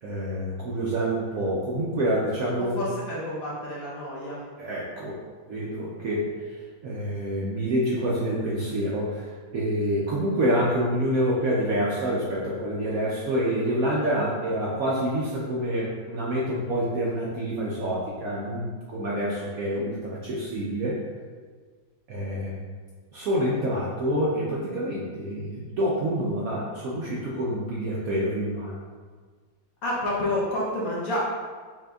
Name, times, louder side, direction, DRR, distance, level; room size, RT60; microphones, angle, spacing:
voice 1, 0.0-2.8 4.6-5.2 5.5-6.3 6.8-21.0 22.1-22.5 23.1-28.7, equal, 70° right, -5 dB, 0.8 m, -27 dB
voice 2, 2.6-4.4 29.8-31.2, left 1 dB, 60° left, -6 dB, 1.0 m, -29 dB
5.9 x 2.8 x 2.3 m, 1.5 s
omnidirectional pair, 2.0 m